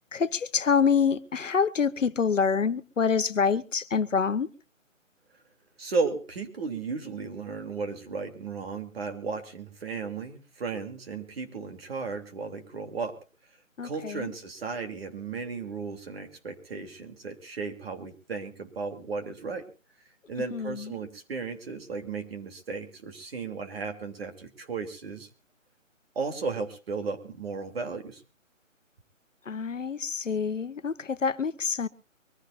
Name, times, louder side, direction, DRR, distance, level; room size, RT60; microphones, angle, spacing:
voice 1, 0.1-4.5 13.8-14.3 20.5-21.0 29.5-31.9, left 6 dB, 70° left, 1.1 m, -26 dB
voice 2, 5.8-13.1 13.8-19.6 20.3-25.3 26.1-28.2, right 4 dB, 50° right, 3.2 m, -35 dB
24.5 x 15.0 x 2.6 m
figure-of-eight pair, 155°, 39 cm